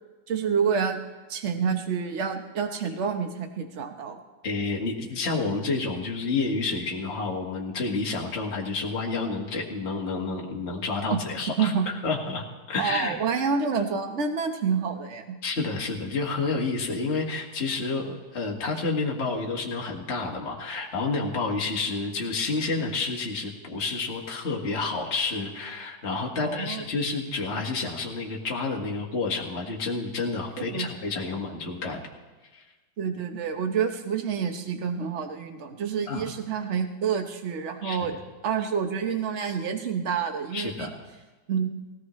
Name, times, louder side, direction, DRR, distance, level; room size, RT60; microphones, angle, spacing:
voice 1, 0.3-1.0 1.3-4.2 11.1-11.2 11.6-11.8 12.8-15.4 26.4-26.8 30.6-30.9 33.0-38.1 38.4-40.9 41.5-41.7, right 6 dB, 45° right, 5 dB, 1.0 m, -28 dB
voice 2, 4.4-11.7 12.0-13.2 15.4-32.0 32.5-32.6 36.1-36.2 37.8-38.0 40.5-40.9, left 3 dB, 30° left, -1 dB, 1.9 m, -29 dB
19.0 x 17.5 x 3.2 m, 1.3 s
omnidirectional pair, 2.4 m